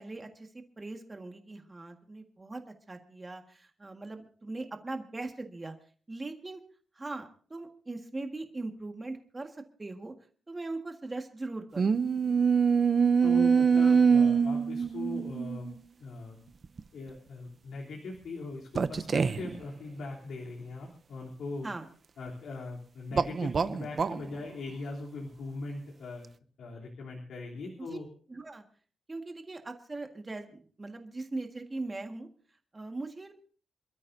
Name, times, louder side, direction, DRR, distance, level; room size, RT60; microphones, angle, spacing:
voice 1, 0.0-5.7 6.1-6.6 6.9-10.1 10.5-12.1 21.6-21.9 27.9-28.0 28.3-28.6 29.1-32.3 32.7-33.3, right 2 dB, 20° right, 4 dB, 1.7 m, -40 dB
sound 1, 11.8-15.7 16.6-16.8 18.7-19.6 23.1-24.2, right 6 dB, 40° right, 0.6 m, -24 dB
voice 2, 13.2-15.7 16.0-16.4 16.9-21.7 22.2-26.3 26.6-28.1, left 3 dB, 80° left, -2 dB, 3.3 m, -40 dB
27.5 x 13.0 x 2.7 m, 0.42 s
wide cardioid pair, 155°, 0 cm